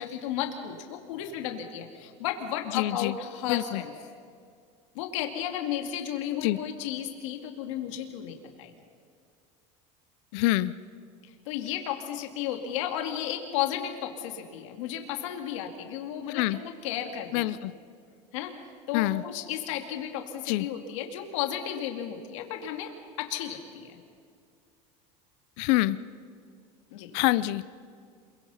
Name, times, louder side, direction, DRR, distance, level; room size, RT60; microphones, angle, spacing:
voice 1, 0.0-3.9 4.9-8.7 11.2-17.5 18.3-18.5 18.9-22.9 23.2-24.0 26.9-27.1, left 10 dB, 85° left, 4 dB, 2.6 m, -33 dB
voice 2, 2.7-3.1 3.5-3.8 6.4-6.6 10.3-10.7 16.3-16.6 17.3-17.7 18.9-19.2 20.5-20.7 25.6-26.0 27.1-27.7, left 18 dB, 65° left, 15 dB, 0.6 m, -26 dB
27.5 x 23.0 x 5.8 m, 2.2 s
cardioid pair, 155°, 16 cm